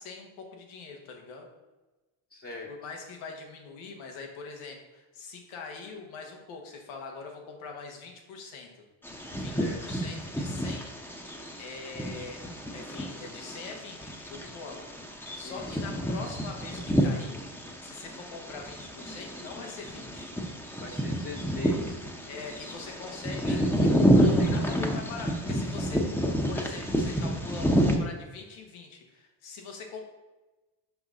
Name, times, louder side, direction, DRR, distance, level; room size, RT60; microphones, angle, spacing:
voice 1, 0.0-1.5 2.7-8.8 9.3-10.9 11.6-12.5 12.7-17.4 17.8-20.3 22.3-30.0, left 4 dB, 90° left, 2 dB, 1.3 m, -43 dB
voice 2, 2.3-2.7 9.6-9.8 14.7-14.8 15.4-15.8 20.8-22.0 23.5-23.9 24.4-24.8, left 2 dB, 30° left, -3 dB, 1.0 m, -42 dB
Bird vocalization bird call bird song, 9.0-28.0, equal, 5° left, 0.9 m, -29 dB
5.8 x 5.4 x 3.7 m, 1.1 s
supercardioid pair, 85°, 47 cm